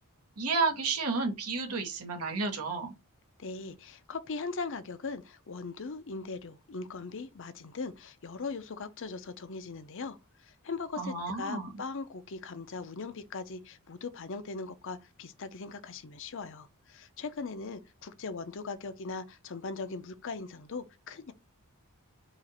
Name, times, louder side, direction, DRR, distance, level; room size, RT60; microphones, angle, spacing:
voice 1, 0.4-2.9 11.0-11.7, right 4 dB, 90° right, 1.5 m, -31 dB
voice 2, 3.4-21.3, left 4 dB, 60° left, 0.6 m, -40 dB
4.8 x 2.5 x 4.2 m
head